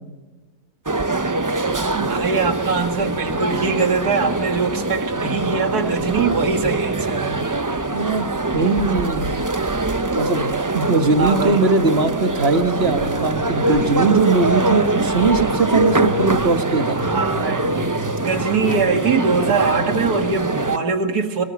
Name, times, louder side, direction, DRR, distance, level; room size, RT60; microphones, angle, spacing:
sound 1, 0.8-20.8, right 2 dB, 25° right, 0.4 m, -23 dB
voice 1, 1.8-7.4 11.2-11.7 17.0-17.7 18.2-21.4, right 4 dB, 90° right, 6 dB, 2.5 m, -22 dB
voice 2, 7.9-8.3 8.5-9.3 10.2-17.0, right 3 dB, 40° right, 8 dB, 1.6 m, -20 dB
sound 2, 12.7-20.1, equal, 70° left, 5.0 m, -33 dB
24.5 x 20.0 x 9.5 m, 1.3 s
omnidirectional pair, 1.6 m